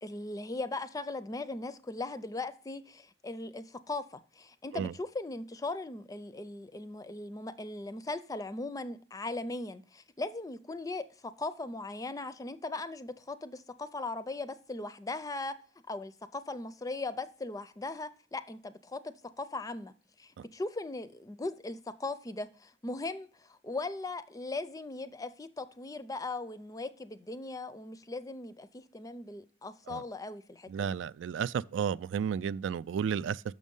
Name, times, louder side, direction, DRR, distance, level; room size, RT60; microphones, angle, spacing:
voice 1, 0.0-15.6 15.9-31.0, left 2 dB, 20° left, 0.5 m, -39 dB
voice 2, 30.7-33.4, right 7 dB, 75° right, 0.3 m, -32 dB
6.4 x 6.3 x 5.3 m
head